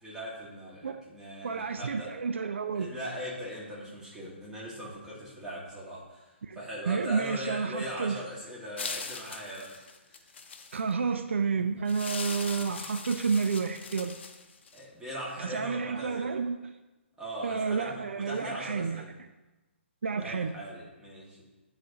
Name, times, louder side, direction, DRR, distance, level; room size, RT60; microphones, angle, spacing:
voice 1, 0.0-2.1 2.8-10.2 14.7-16.3 17.2-19.1 20.2-21.4, equal, 10° right, -7 dB, 1.9 m, -40 dB
voice 2, 1.4-2.9 6.4-6.6 6.9-8.2 10.7-14.2 15.4-16.8 17.4-19.0 20.0-20.5, right 5 dB, 75° right, 8 dB, 0.4 m, -30 dB
sound 1, 8.8-10.9 11.9-14.8, left 5 dB, 60° left, 0.7 m, -40 dB
9.4 x 3.9 x 2.8 m, 1.1 s
figure-of-eight pair, 135°, 7 cm